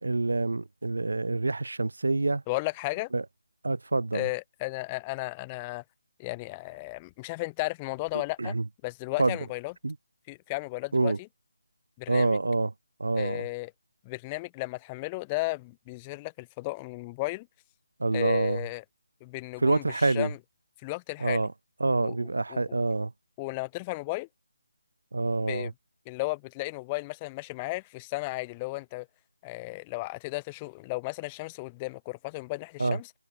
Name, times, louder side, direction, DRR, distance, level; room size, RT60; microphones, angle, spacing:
voice 1, 0.0-2.4 3.1-3.2 3.6-4.3 8.4-8.6 9.2-9.4 9.8-9.9 10.9-11.2 12.1-12.7 13.0-13.5 18.0-18.6 19.6-20.3 21.2-21.5 21.8-23.1 25.1-25.7 32.8-33.0, right 3 dB, 75° right, 2.4 m, -26 dB
voice 2, 2.5-3.1 4.1-5.8 6.2-8.6 8.8-9.7 10.3-11.1 12.0-12.4 13.1-13.7 14.0-17.5 18.1-18.8 19.2-20.4 20.8-21.4 22.0-22.2 22.5-22.8 23.4-24.3 25.4-25.7 26.1-29.1 29.4-33.1, left 24 dB, 10° left, 4.4 m, -34 dB
figure-of-eight pair, 180°, 0 cm